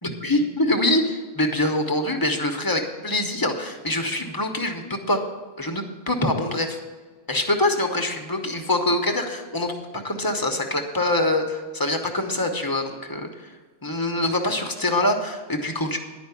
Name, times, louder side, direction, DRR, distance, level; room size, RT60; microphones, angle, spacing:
voice 1, 0.0-5.3 5.6-6.7 7.3-13.5 13.8-16.0, left 1 dB, 20° left, 4 dB, 0.8 m, -24 dB
11.0 x 5.2 x 8.3 m, 1.3 s
omnidirectional pair, 1.3 m